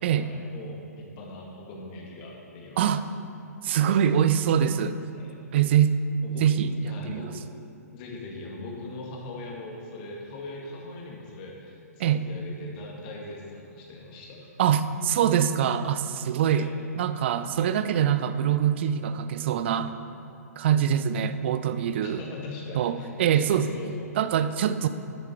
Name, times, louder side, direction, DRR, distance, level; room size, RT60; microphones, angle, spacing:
voice 1, 0.2-2.8 5.1-5.3 6.2-6.4 6.9-7.4 7.9-14.5 16.5-16.8 22.0-24.1 24.4-24.5, left 2 dB, 35° left, -2 dB, 2.0 m, -41 dB
voice 2, 3.6-5.0 5.5-6.0 6.4-6.7 7.0-7.2 12.0-12.2 14.6-16.7 17.0-19.9 20.6-22.2 22.7-23.7 24.2-24.9, right 9 dB, 45° right, 12 dB, 0.5 m, -24 dB
10.0 x 8.3 x 4.6 m, 2.6 s
figure-of-eight pair, 115°, 9 cm